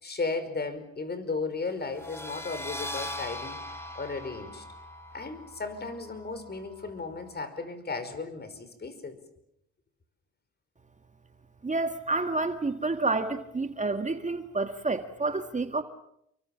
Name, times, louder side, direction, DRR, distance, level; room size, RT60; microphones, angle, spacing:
voice 1, 0.0-3.6 4.0-4.6 5.1-9.2, left 4 dB, 35° left, 11 dB, 5.2 m, -35 dB
sound 1, 1.9-7.3, left 1 dB, 10° left, 3.9 m, -41 dB
voice 2, 11.6-15.8, right 3 dB, 25° right, 8 dB, 1.9 m, -29 dB
29.5 x 23.5 x 7.3 m, 0.77 s
cardioid pair, 90°, 30 cm